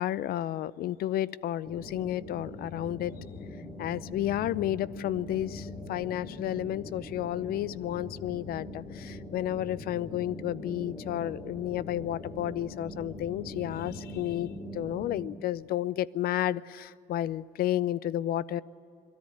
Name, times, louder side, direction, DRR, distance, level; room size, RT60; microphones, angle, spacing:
voice 1, 0.0-3.1 3.8-18.6, left 12 dB, 65° left, 20 dB, 0.5 m, -32 dB
sound 1, 1.6-15.2, left 2 dB, 35° left, 3.2 m, -42 dB
22.5 x 13.5 x 9.2 m, 2.7 s
cardioid pair, 110°, 17 cm